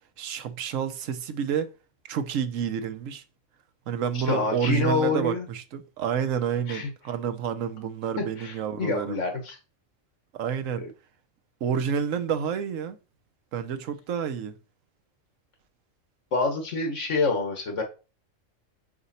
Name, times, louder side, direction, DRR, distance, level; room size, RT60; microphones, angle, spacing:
voice 1, 0.2-1.7 2.1-3.2 3.9-9.2 10.3-10.9 11.6-13.0 13.5-14.6, right 8 dB, 90° right, 1.1 m, -29 dB
voice 2, 4.1-5.5 6.7-6.9 8.2-9.6 16.3-17.8, left 3 dB, 75° left, 1.8 m, -27 dB
5.2 x 4.8 x 4.2 m
omnidirectional pair, 1.3 m